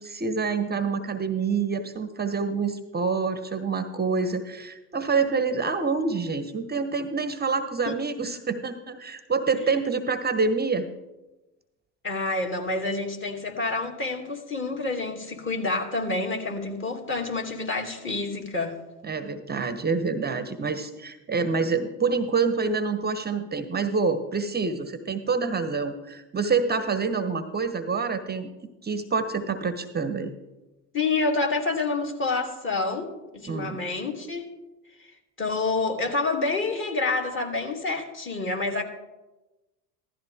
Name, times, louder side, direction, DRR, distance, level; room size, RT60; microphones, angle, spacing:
voice 1, 0.0-10.9 19.0-28.5 28.8-30.3 33.5-33.8, right 4 dB, 20° right, 10 dB, 1.0 m, -27 dB
voice 2, 12.0-18.8 30.9-34.5 35.4-38.8, left 3 dB, 25° left, 1 dB, 2.6 m, -28 dB
16.0 x 13.0 x 3.6 m, 1.1 s
hypercardioid pair, 75°, 48 cm